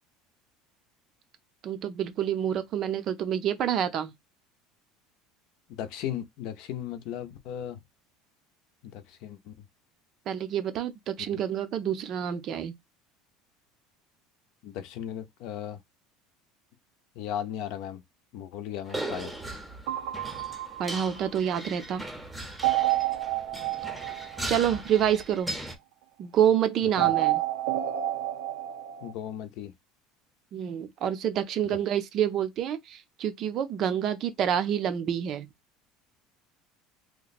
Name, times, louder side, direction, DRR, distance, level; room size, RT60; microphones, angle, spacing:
voice 1, 1.6-4.1 10.3-12.7 20.8-22.0 24.5-25.5 26.2-27.4 30.5-35.5, right 9 dB, 40° right, 0.5 m, -27 dB
voice 2, 5.7-7.8 8.8-9.5 11.3-11.4 14.6-15.8 17.1-18.0 18.3-19.3 27.0-27.1 29.0-29.7 31.7-31.8, left 10 dB, 60° left, 0.6 m, -36 dB
sound 1, 18.9-25.8, right 1 dB, 5° right, 0.7 m, -38 dB
sound 2, 19.9-21.6 22.6-25.1 27.0-29.1, right 15 dB, 90° right, 0.6 m, -29 dB
3.0 x 2.2 x 4.1 m
cardioid pair, 150°, 0 cm